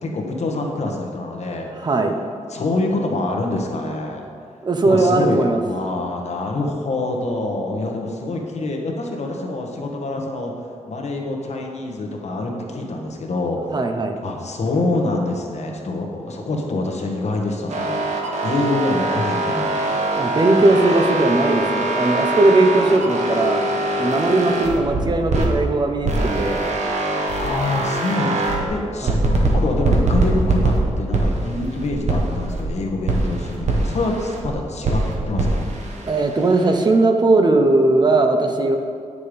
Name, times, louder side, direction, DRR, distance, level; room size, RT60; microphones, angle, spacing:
voice 1, 0.0-1.7 2.5-4.3 4.8-10.5 10.9-13.7 14.2-18.0 18.4-19.8 27.4-29.1 29.5-35.6, left 2 dB, 60° left, 1 dB, 1.3 m, -25 dB
voice 2, 1.7-2.1 4.6-5.6 13.7-14.2 20.1-23.7 24.0-26.6 29.0-29.2 36.1-38.8, right 2 dB, 35° right, 5 dB, 0.8 m, -18 dB
sound 1, 17.7-25.5 26.0-28.7 29.1-32.7 33.1-34.5 34.8-36.9, right 2 dB, 65° right, 1.5 m, -22 dB
9.5 x 6.9 x 5.1 m, 2.3 s
wide cardioid pair, 165°, 13 cm